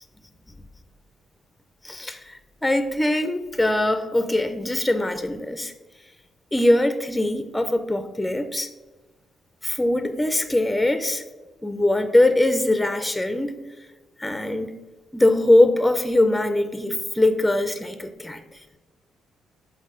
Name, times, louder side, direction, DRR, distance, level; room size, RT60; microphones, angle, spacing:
voice 1, 1.8-5.7 6.5-8.7 9.6-11.2 11.6-13.6 14.2-14.7 15.1-18.4, left 1 dB, 10° left, 10 dB, 0.5 m, -22 dB
6.4 x 3.7 x 4.8 m, 1.2 s
cardioid pair, 90°, 0 cm